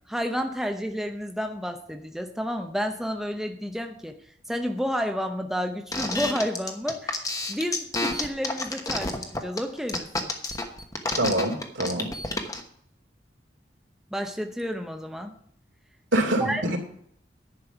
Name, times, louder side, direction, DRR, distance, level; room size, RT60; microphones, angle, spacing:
voice 1, 0.1-4.2 4.5-10.3 14.1-15.3 16.4-16.8, equal, ahead, 4 dB, 0.7 m, -31 dB
sound 1, 5.9-12.6, left 2 dB, 20° left, 1.1 m, -29 dB
voice 2, 11.2-12.1 16.1-16.8, right 1 dB, 80° right, 0 dB, 2.8 m, -25 dB
10.5 x 5.4 x 7.9 m, 0.65 s
head